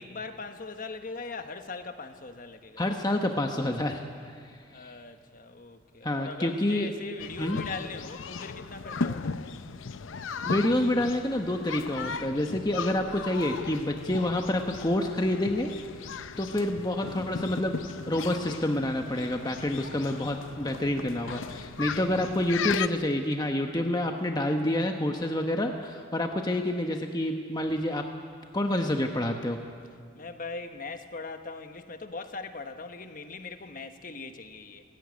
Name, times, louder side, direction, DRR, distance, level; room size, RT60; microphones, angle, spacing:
voice 1, 0.0-2.8 4.7-9.4 30.1-34.8, left 3 dB, 45° left, 7 dB, 1.2 m, -40 dB
voice 2, 2.8-4.0 4.8-4.9 6.0-6.9 7.4-7.6 10.4-15.7 16.1-17.7 18.1-28.0 28.5-29.6, left 1 dB, 20° left, 4 dB, 1.1 m, -28 dB
sound 1, 7.2-22.9, left 5 dB, 85° left, 0.6 m, -37 dB
19.0 x 16.5 x 9.6 m, 2.1 s
head